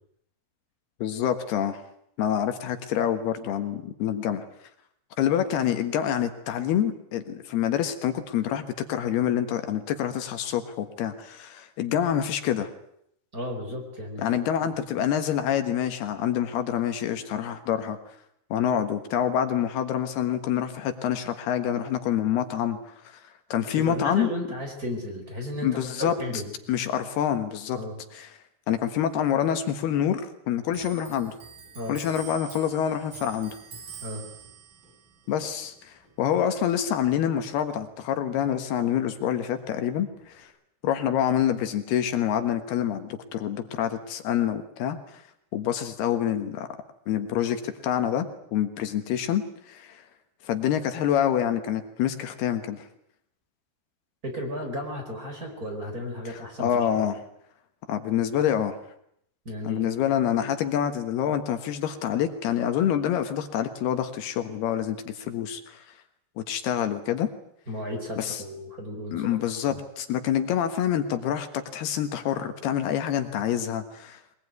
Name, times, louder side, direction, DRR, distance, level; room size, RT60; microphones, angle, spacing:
voice 1, 1.0-1.8 2.2-4.4 5.2-8.6 8.9-12.7 14.2-18.0 18.5-22.9 23.5-24.3 25.6-26.2 26.7-27.8 28.1-28.3 28.7-31.3 31.9-33.5 35.3-40.5 40.8-45.2 45.5-46.7 47.1-50.0 50.4-52.9 56.6-57.2 57.9-58.8 59.7-65.8 66.5-67.3 68.2-68.4 69.1-74.2, left 10 dB, 75° left, 8 dB, 3.4 m, -27 dB
voice 2, 13.3-14.2 14.6-14.7 23.8-26.5 27.7-28.0 31.7-32.0 34.0-34.3 54.2-57.1 59.4-59.8 67.7-69.3 69.7-69.8, left 1 dB, 20° right, 3 dB, 4.8 m, -34 dB
Clock, 30.7-37.7 38.0-39.3 39.6-40.4, right 7 dB, 60° right, 6.3 m, -47 dB
22.5 x 21.0 x 9.5 m, 0.73 s
omnidirectional pair, 4.7 m